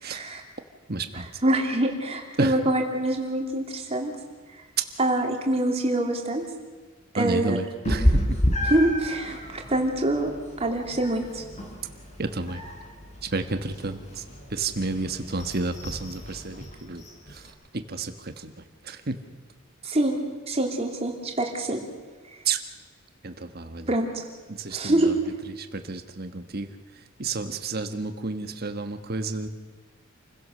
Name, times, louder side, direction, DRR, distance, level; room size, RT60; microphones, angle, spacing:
voice 1, 0.0-0.4 1.1-4.1 5.0-6.4 7.1-7.6 8.6-10.3 10.6-11.4 19.8-20.2 20.5-21.8 23.9-24.2 24.7-25.4, right 1 dB, 30° right, 2 dB, 3.0 m, -25 dB
voice 2, 0.9-1.2 2.4-2.5 7.2-8.2 12.2-12.6 13.3-14.0 14.5-17.0 17.7-18.5 18.9-19.2 22.4-22.6 23.2-23.9 24.6-25.1 25.6-26.7 27.2-29.5, right 3 dB, 50° right, 8 dB, 1.4 m, -31 dB
Meow, 7.8-17.5, equal, 35° left, 4.5 m, -30 dB
28.0 x 16.0 x 6.7 m, 1.3 s
head